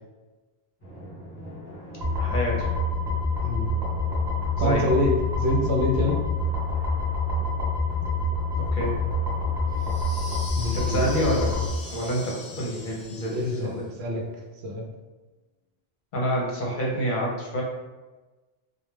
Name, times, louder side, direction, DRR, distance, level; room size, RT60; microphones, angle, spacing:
Drum, 0.8-13.9, equal, 20° left, 1.0 m, -44 dB
sound 1, 2.0-11.7, left 2 dB, 25° right, 0.9 m, -26 dB
voice 1, 2.2-2.7 4.6-4.9 8.6-9.0 10.7-13.8 16.1-17.6, equal, 55° left, -3 dB, 0.7 m, -28 dB
voice 2, 4.6-6.2 10.6-11.1 13.3-13.7 14.0-14.2 14.6-14.8, left 2 dB, 85° right, 0 dB, 0.8 m, -25 dB
sound 2, 9.8-13.8, left 2 dB, 35° left, 0.3 m, -41 dB
2.2 x 2.2 x 3.1 m, 1.2 s
omnidirectional pair, 1.1 m